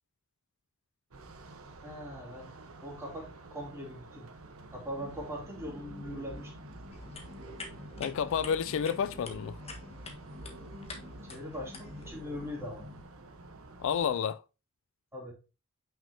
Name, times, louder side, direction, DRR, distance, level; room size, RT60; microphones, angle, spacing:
sound 1, 1.1-14.2, right 2 dB, 75° right, 1.0 m, -51 dB
voice 1, 1.8-2.5 2.8-4.3 4.7-6.5 11.2-12.9 15.1-15.3, equal, 10° right, 3.0 m, -41 dB
sound 2, 5.0-13.0, left 1 dB, 30° right, 1.6 m, -48 dB
sound 3, 6.9-12.1, left 3 dB, 30° left, 1.4 m, -48 dB
voice 2, 8.0-9.6 13.8-14.4, left 7 dB, 60° left, 0.3 m, -30 dB
8.8 x 5.8 x 2.8 m
head